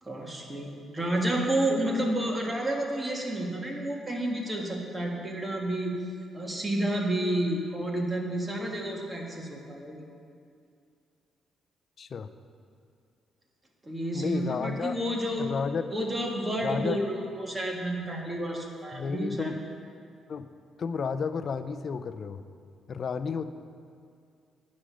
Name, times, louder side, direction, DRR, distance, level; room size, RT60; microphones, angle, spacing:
voice 1, 0.0-6.0 6.3-10.0 13.8-15.5 15.9-19.5, right 1 dB, 15° right, 0 dB, 1.6 m, -30 dB
voice 2, 12.0-12.3 14.1-15.0 15.4-15.9 16.6-17.0 18.9-19.6 20.3-20.5 20.8-22.4 22.9-23.4, left 5 dB, 50° left, 11 dB, 0.5 m, -32 dB
9.7 x 6.4 x 6.2 m, 2.3 s
cardioid pair, 90°, 0 cm